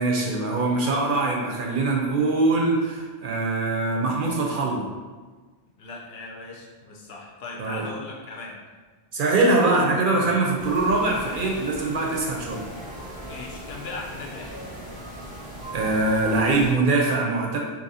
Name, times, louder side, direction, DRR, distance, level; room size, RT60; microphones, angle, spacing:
voice 1, 0.0-4.8 7.6-7.8 9.1-12.6 15.7-17.6, right 2 dB, 60° right, -1 dB, 0.6 m, -23 dB
voice 2, 5.8-8.6 9.6-9.8 13.3-14.6, left 3 dB, 70° left, -2 dB, 0.9 m, -38 dB
sound 1, 10.6-16.7, equal, 10° right, 0.7 m, -38 dB
2.8 x 2.6 x 4.0 m, 1.4 s
omnidirectional pair, 1.1 m